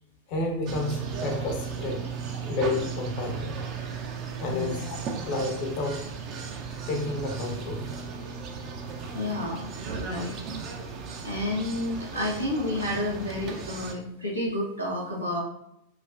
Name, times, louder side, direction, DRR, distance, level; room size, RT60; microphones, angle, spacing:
voice 1, 0.3-2.0 2.3-3.5 4.4-5.0 5.2-6.0 6.9-7.9, left 2 dB, 45° left, 1 dB, 0.8 m, -30 dB
sound 1, 0.7-14.0, right 5 dB, 35° right, 0.5 m, -36 dB
voice 2, 4.5-4.9 9.1-9.7 10.0-10.4 11.2-15.4, left 1 dB, 80° right, -3 dB, 1.0 m, -30 dB
4.6 x 2.1 x 2.5 m, 0.81 s
figure-of-eight pair, 90°, 0 cm